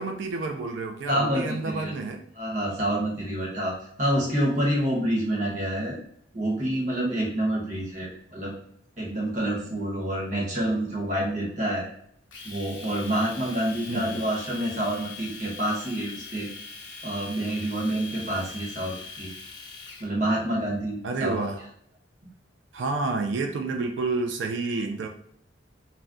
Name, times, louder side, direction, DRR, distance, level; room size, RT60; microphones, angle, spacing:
voice 1, 0.0-2.2 13.9-14.3 21.0-21.6 22.7-25.1, right 3 dB, 75° right, 4 dB, 0.4 m, -29 dB
voice 2, 1.1-1.9 2.4-6.0 6.3-8.6 9.0-11.9 12.4-16.5 17.0-19.3 20.0-21.4, right 1 dB, 40° right, -4 dB, 1.0 m, -27 dB
Domestic sounds home sounds, 12.3-20.1, left 4 dB, 80° left, 0.6 m, -42 dB
2.5 x 2.2 x 3.4 m, 0.66 s
head